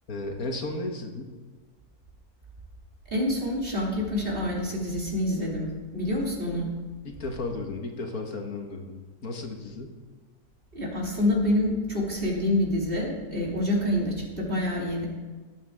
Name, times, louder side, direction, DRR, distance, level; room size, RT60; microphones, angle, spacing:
voice 1, 0.1-1.3 7.1-10.0, left 2 dB, 70° left, 3 dB, 1.9 m, -34 dB
voice 2, 3.1-6.7 10.7-15.1, left 1 dB, 35° right, -3 dB, 3.0 m, -27 dB
18.5 x 8.3 x 3.6 m, 1.4 s
omnidirectional pair, 1.6 m